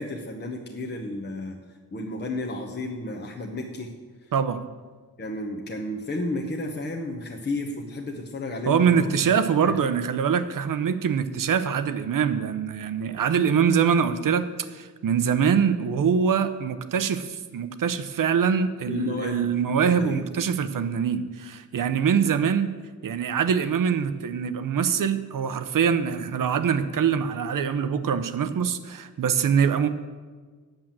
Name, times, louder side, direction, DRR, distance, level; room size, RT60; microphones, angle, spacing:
voice 1, 0.0-1.6 1.9-3.9 5.2-9.3 9.6-9.8 18.9-19.5 19.8-20.2, left 2 dB, 30° left, 0 dB, 1.0 m, -32 dB
voice 2, 4.3-4.7 8.7-22.7 23.0-29.9, right 7 dB, 65° right, 11 dB, 0.8 m, -24 dB
8.9 x 7.5 x 7.5 m, 1.5 s
wide cardioid pair, 110°, 36 cm